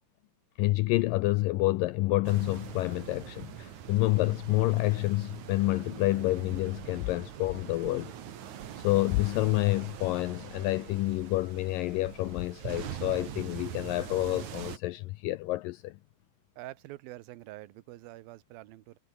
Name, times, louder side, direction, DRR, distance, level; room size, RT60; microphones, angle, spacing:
voice 1, 0.6-8.1 8.8-15.9, left 19 dB, 85° left, 2.0 m, -28 dB
sound 1, 0.9-5.6, left 7 dB, 55° left, 4.0 m, -64 dB
sound 2, 2.2-14.8, right 9 dB, 55° right, 2.9 m, -43 dB
voice 2, 16.6-19.0, right 17 dB, 75° right, 2.7 m, -46 dB
omnidirectional pair, 4.5 m